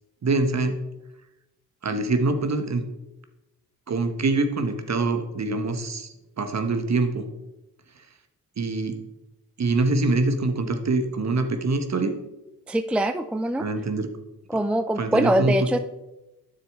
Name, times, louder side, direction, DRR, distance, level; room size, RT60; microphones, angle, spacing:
voice 1, 0.2-0.8 1.8-2.8 3.9-7.2 8.6-9.0 9.6-12.2 13.6-14.1 15.0-15.6, right 3 dB, 50° right, 8 dB, 1.1 m, -24 dB
voice 2, 12.7-13.7 14.5-15.8, right 1 dB, 5° right, 10 dB, 0.4 m, -23 dB
9.4 x 6.8 x 3.5 m, 0.97 s
cardioid pair, 55°, 35 cm